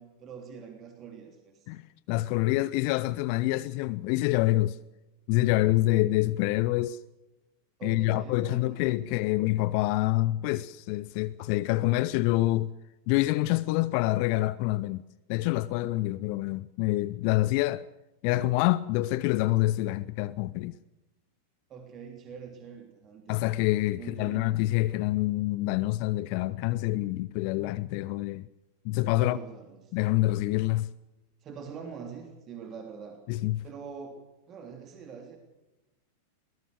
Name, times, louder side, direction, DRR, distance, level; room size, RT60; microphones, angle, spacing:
voice 1, 0.0-1.7 7.8-9.1 21.7-23.4 24.0-24.5 29.2-29.9 31.4-33.2 33.6-35.4, right 6 dB, 30° right, 3.3 m, -44 dB
voice 2, 1.7-4.8 5.3-7.0 7.8-12.7 13.1-15.0 15.3-17.8 18.2-20.7 23.3-28.5 28.8-29.4 29.9-30.9 33.3-33.6, left 17 dB, 45° left, 0.6 m, -26 dB
22.5 x 18.5 x 6.5 m
figure-of-eight pair, 90°, 0 cm